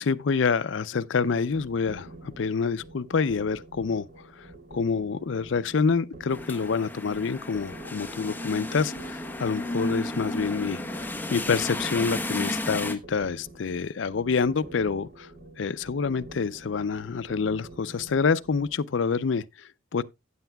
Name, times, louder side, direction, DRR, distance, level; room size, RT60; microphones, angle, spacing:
voice 1, 0.0-4.5 4.7-10.8 11.3-15.3 15.6-20.0, left 5 dB, 65° left, 0.5 m, -27 dB
sound 1, 1.3-18.7, right 2 dB, 50° right, 3.2 m, -47 dB
sound 2, 6.3-13.0, left 1 dB, 10° left, 1.0 m, -33 dB
15.0 x 7.9 x 2.3 m
head